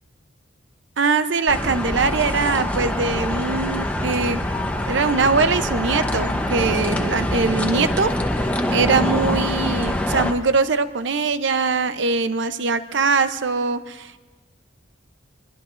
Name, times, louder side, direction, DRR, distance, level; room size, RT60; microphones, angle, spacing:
voice 1, 1.0-4.4 4.9-8.2 8.7-14.2, right 4 dB, 65° right, 11 dB, 0.7 m, -22 dB
sound 1, 1.5-10.3, left 1 dB, 5° left, 0.8 m, -24 dB
23.5 x 21.5 x 2.5 m, 1.3 s
head